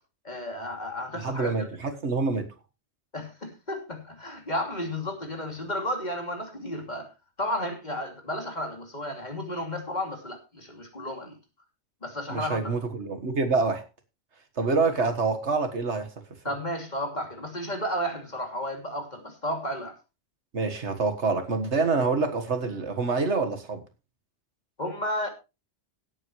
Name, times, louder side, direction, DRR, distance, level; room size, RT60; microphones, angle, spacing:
voice 1, 0.2-1.7 3.1-7.1 7.4-11.4 12.0-12.7 16.4-20.0 24.8-25.3, left 1 dB, 40° left, 3.0 m, -33 dB
voice 2, 1.1-2.5 12.3-13.9 14.6-16.1 20.5-23.8, right 4 dB, 80° right, 1.9 m, -26 dB
17.0 x 8.8 x 3.2 m
omnidirectional pair, 1.2 m